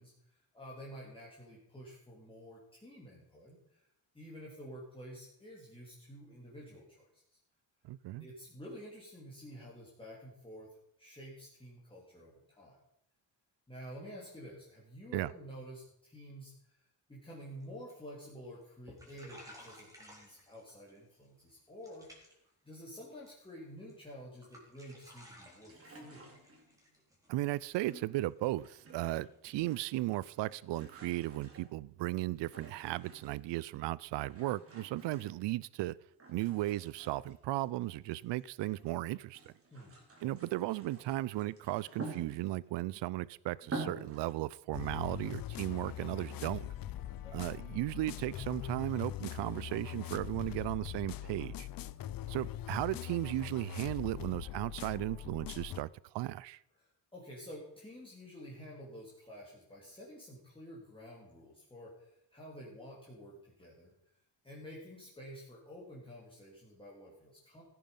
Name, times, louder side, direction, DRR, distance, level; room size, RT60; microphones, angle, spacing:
voice 1, 0.0-3.8 4.1-7.4 8.2-12.8 13.7-22.4 22.6-26.3 39.7-39.9 47.2-47.4 50.4-50.6 56.8-63.9 64.4-67.6, equal, 10° left, -5 dB, 3.4 m, -50 dB
voice 2, 7.9-8.3 15.1-15.3 27.3-36.0 36.3-39.4 40.2-46.7 47.3-51.7 52.3-55.9 56.1-56.6, right 17 dB, 80° right, 22 dB, 0.5 m, -36 dB
sound 1, 17.6-17.7 17.9-18.3 18.6-18.7 18.9-21.0 21.2-21.6 21.8-22.5 22.8-23.5 23.9-24.1 24.4-30.8, equal, 10° right, 4.3 m, -57 dB
sound 2, 25.6-26.9 27.8-29.3 29.6-30.2 30.5-33.6 34.2-35.8 36.2-38.8 39.2-42.7 43.2-43.3 43.6-44.3, right 3 dB, 30° right, 3.8 m, -48 dB
sound 3, 44.7-55.8, left 12 dB, 55° left, 0.7 m, -42 dB
16.0 x 9.3 x 5.4 m, 0.76 s
cardioid pair, 130°, 42 cm